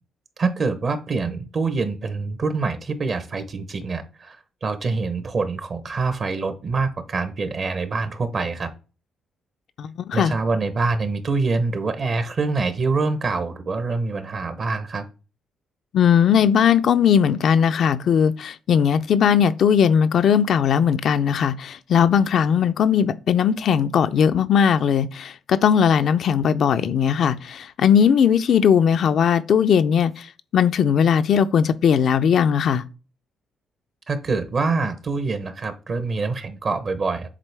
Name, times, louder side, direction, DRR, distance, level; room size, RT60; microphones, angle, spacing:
voice 1, 0.4-8.7 10.1-15.0 34.1-37.3, right 4 dB, 45° right, 0.9 m, -25 dB
voice 2, 9.8-10.3 15.9-30.3 30.5-32.8, left 7 dB, 65° left, 0.5 m, -18 dB
7.4 x 3.7 x 3.4 m
cardioid pair, 90°, 0 cm